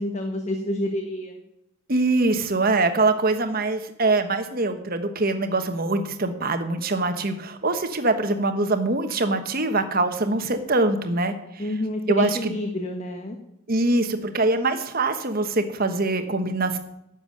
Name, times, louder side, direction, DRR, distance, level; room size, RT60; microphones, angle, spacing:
voice 1, 0.0-1.4 11.6-13.4, left 1 dB, 30° left, 4 dB, 1.3 m, -28 dB
voice 2, 1.9-11.3 12.1-12.5 13.7-16.8, right 2 dB, 45° right, 8 dB, 1.3 m, -23 dB
11.5 x 7.4 x 9.7 m, 0.81 s
head